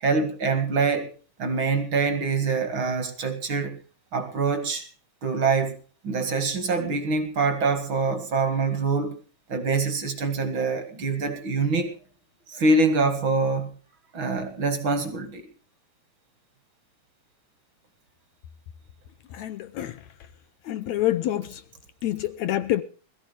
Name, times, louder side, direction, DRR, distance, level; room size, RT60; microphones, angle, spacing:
voice 1, 0.0-1.1 1.4-3.8 4.1-4.9 5.2-5.8 6.0-9.2 9.5-11.9 12.5-13.7 14.1-15.5, right 4 dB, 45° right, 2.1 m, -25 dB
voice 2, 19.4-19.9 20.7-21.5 22.0-22.8, left 13 dB, 70° left, 1.8 m, -26 dB
21.5 x 15.0 x 3.4 m
omnidirectional pair, 3.9 m